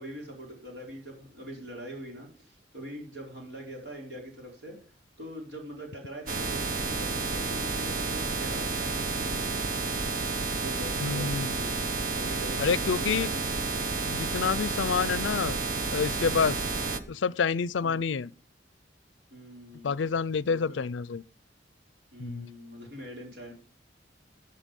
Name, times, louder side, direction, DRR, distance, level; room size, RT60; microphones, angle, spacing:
voice 1, 0.0-4.8 5.2-9.6 10.6-11.8 12.1-13.8 17.8-18.1 19.3-20.0 20.5-20.9 22.1-23.5, equal, 65° right, 4.8 m, -43 dB
sound 1, 6.3-17.0, right 3 dB, 50° right, 1.1 m, -31 dB
voice 2, 11.0-11.6 12.6-13.3 14.1-15.6 15.9-16.6 17.1-18.3 19.8-21.2 22.2-22.5, left 5 dB, 85° left, 0.5 m, -28 dB
15.0 x 8.7 x 5.3 m
head